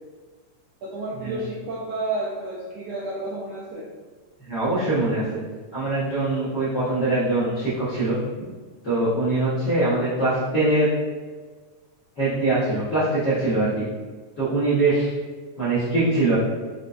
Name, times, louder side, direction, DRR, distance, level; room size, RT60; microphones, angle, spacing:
voice 1, 0.8-3.9, right 2 dB, 80° right, -5 dB, 1.5 m, -31 dB
voice 2, 4.5-5.2 5.7-8.2 8.8-10.9 12.2-13.9 14.4-15.1 15.6-16.4, right 2 dB, 75° left, -13 dB, 0.9 m, -22 dB
5.3 x 2.1 x 2.4 m, 1.4 s
omnidirectional pair, 3.4 m